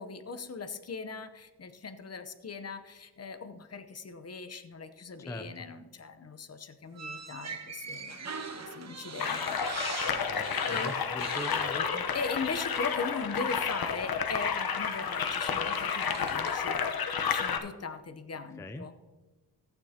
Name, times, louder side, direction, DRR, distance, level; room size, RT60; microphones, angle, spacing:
voice 1, 0.0-8.3 8.6-9.6 10.7-10.9 12.1-16.8 17.3-18.9, left 4 dB, 40° left, 10 dB, 0.8 m, -39 dB
sound 1, 6.9-12.4 12.7-12.9 14.2-14.3 14.9-16.6, right 5 dB, 40° right, 1.0 m, -43 dB
sound 2, 9.2-17.6, left 6 dB, 65° left, 1.0 m, -31 dB
voice 2, 10.3-12.1 18.6-18.9, left 1 dB, 10° left, 7 dB, 0.4 m, -41 dB
14.0 x 9.1 x 2.8 m, 1.2 s
wide cardioid pair, 125°, 40 cm